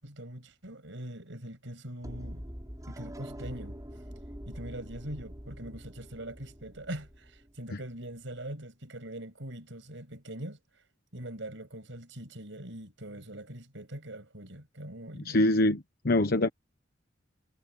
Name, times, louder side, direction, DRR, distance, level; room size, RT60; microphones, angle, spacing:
voice 1, 0.0-2.5 2.9-3.8 4.5-10.8 11.1-15.4, right 1 dB, 70° right, 7.4 m, -42 dB
sound 1, 2.0-8.0, equal, 20° right, 5.9 m, -44 dB
voice 2, 15.3-16.5, left 1 dB, 50° left, 1.1 m, -24 dB
head